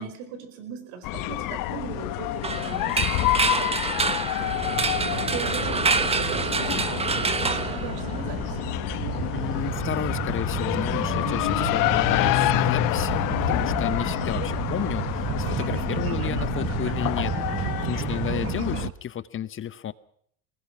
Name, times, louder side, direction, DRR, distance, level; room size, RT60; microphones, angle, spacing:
voice 1, 0.0-4.5 5.3-8.7, right 7 dB, 70° right, 8 dB, 4.8 m, -38 dB
sound 1, 1.0-18.9, left 16 dB, 60° left, 1.3 m, -28 dB
sound 2, 2.4-8.4, right 4 dB, 15° right, 1.4 m, -27 dB
sound 3, 4.4-18.9, right 12 dB, 35° right, 0.8 m, -32 dB
voice 2, 9.3-19.9, left 10 dB, 30° left, 16 dB, 1.0 m, -32 dB
23.0 x 19.5 x 6.1 m, 0.64 s
supercardioid pair, 110°, 38 cm